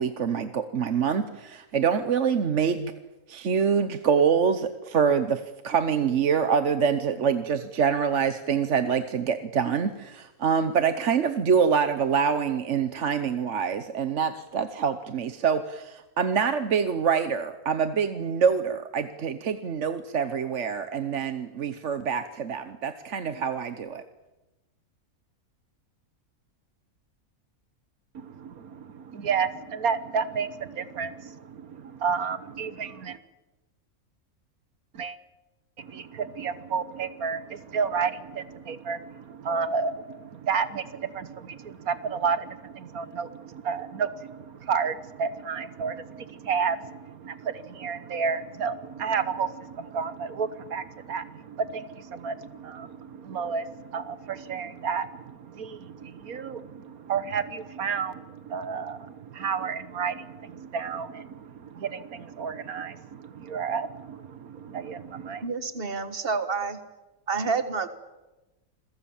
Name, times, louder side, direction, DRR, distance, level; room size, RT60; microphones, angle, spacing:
voice 1, 0.0-2.9 3.3-24.0, right 6 dB, 55° right, 10 dB, 1.3 m, -25 dB
voice 2, 28.1-33.2 34.9-35.2 35.8-65.4, right 6 dB, 80° right, 13 dB, 1.6 m, -31 dB
voice 3, 65.4-66.8 67.3-67.9, right 4 dB, 40° right, 10 dB, 1.8 m, -28 dB
28.0 x 22.5 x 7.2 m, 1.1 s
omnidirectional pair, 1.5 m